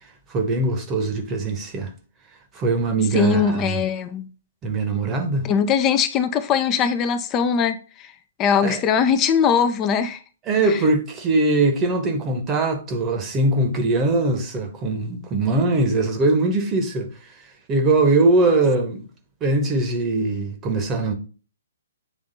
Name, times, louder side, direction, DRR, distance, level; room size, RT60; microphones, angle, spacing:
voice 1, 0.3-1.9 2.5-3.8 4.6-5.5 8.6-8.8 10.5-17.1 17.7-19.0 19.4-21.1, right 2 dB, 20° right, 1.0 m, -21 dB
voice 2, 3.1-4.3 5.4-8.1 8.4-10.2 10.6-10.8, left 7 dB, 20° left, 0.5 m, -21 dB
8.1 x 3.4 x 4.0 m
figure-of-eight pair, 125°, 0 cm